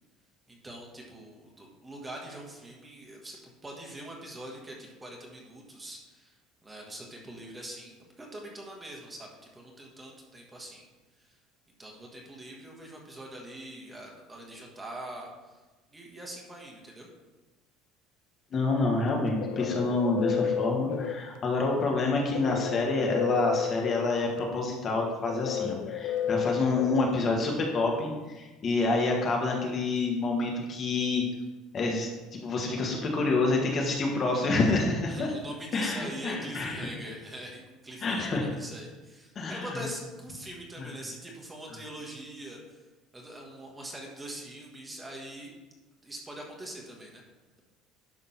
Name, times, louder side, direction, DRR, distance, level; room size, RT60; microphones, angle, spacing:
voice 1, 0.5-6.3 6.6-10.9 11.2-11.4 11.8-15.6 15.9-17.1 35.1-42.8 43.1-45.5 46.0-47.2, right 1 dB, 10° right, 0 dB, 1.5 m, -43 dB
voice 2, 18.5-31.2 31.7-35.3 35.7-36.9 38.0-38.4 39.3-39.8 40.8-40.9, left 3 dB, 30° left, 0 dB, 1.4 m, -28 dB
sound 1, 19.0-27.7, left 8 dB, 60° left, 0.5 m, -33 dB
11.0 x 3.7 x 5.8 m, 1.2 s
cardioid pair, 145°, 0 cm